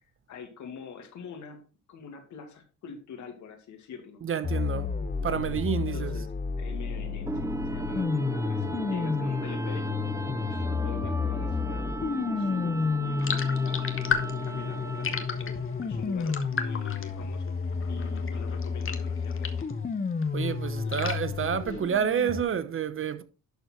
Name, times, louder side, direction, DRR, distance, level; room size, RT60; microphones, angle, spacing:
voice 1, 0.3-1.6 1.9-4.5 5.7-10.0 10.5-12.0 12.3-13.9 14.4-17.6 17.9-19.6 20.8-21.0 21.7-21.8, left 6 dB, 75° left, 2.4 m, -45 dB
voice 2, 4.2-4.9 5.2-6.2 20.3-23.2, right 8 dB, 45° right, 0.9 m, -29 dB
sound 1, 4.4-22.4, left 5 dB, 30° left, 1.0 m, -31 dB
sound 2, 7.3-15.4, right 2 dB, 10° right, 0.5 m, -36 dB
sound 3, 13.2-19.8 20.1-22.2, left 6 dB, 45° left, 1.5 m, -35 dB
11.5 x 4.3 x 4.5 m
cardioid pair, 90°, 30 cm